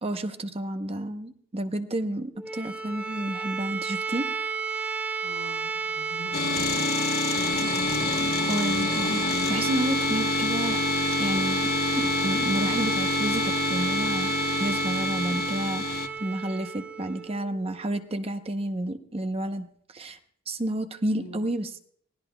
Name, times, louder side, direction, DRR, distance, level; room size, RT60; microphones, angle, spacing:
voice 1, 0.0-4.3 8.5-10.8 11.2-14.3 14.6-20.2 20.5-21.8, right 1 dB, 25° right, 8 dB, 0.7 m, -30 dB
sound 1, 2.3-18.1, right 5 dB, 10° right, 1.9 m, -31 dB
voice 2, 5.2-6.9 21.1-21.5, left 1 dB, 75° left, 4 dB, 5.0 m, -44 dB
sound 2, 6.3-16.1, left 4 dB, 45° left, 0.9 m, -27 dB
23.5 x 17.0 x 2.2 m, 0.63 s
head